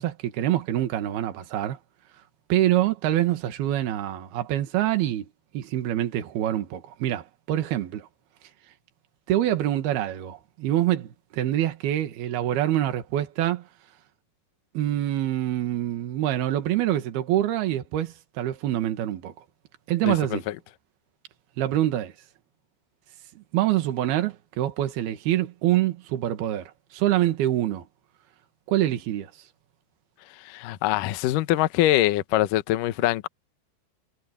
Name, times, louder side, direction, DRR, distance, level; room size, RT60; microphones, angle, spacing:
voice 1, 0.0-1.8 2.5-5.3 5.5-8.1 9.3-13.6 14.8-19.3 19.9-20.5 21.6-22.1 23.4-27.9 28.7-29.3, right 13 dB, 65° right, 3.5 m, -25 dB
voice 2, 20.0-20.4 30.5-33.3, left 14 dB, 85° left, 1.9 m, -23 dB
omnidirectional pair, 5.1 m